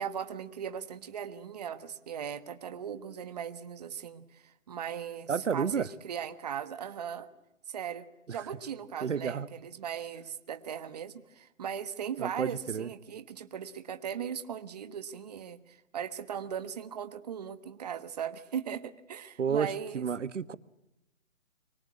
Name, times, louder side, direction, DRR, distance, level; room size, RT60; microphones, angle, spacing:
voice 1, 0.0-7.3 7.7-20.1, right 8 dB, 30° right, 11 dB, 1.4 m, -38 dB
voice 2, 5.3-5.9 8.3-8.4 9.0-9.5 12.2-12.9 19.4-20.5, right 6 dB, 65° right, 16 dB, 1.4 m, -31 dB
24.5 x 24.5 x 8.5 m, 0.90 s
hypercardioid pair, 165°, 39 cm